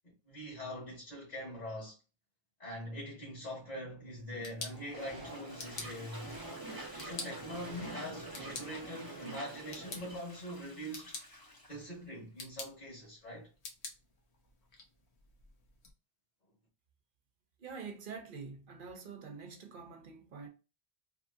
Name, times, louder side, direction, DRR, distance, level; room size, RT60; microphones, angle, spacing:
voice 1, 0.2-2.0 2.6-6.3 7.0-11.2 11.7-13.5, equal, 45° left, 1.4 m, -43 dB
sound 1, 4.1-15.9, left 3 dB, 80° left, 1.1 m, -50 dB
Toilet flush, 4.5-12.1, left 1 dB, 25° left, 0.7 m, -54 dB
sound 2, 4.9-10.2, right 2 dB, 25° right, 0.7 m, -46 dB
voice 2, 17.6-20.5, right 5 dB, 55° right, 0.7 m, -46 dB
2.9 x 2.7 x 2.5 m
omnidirectional pair, 1.1 m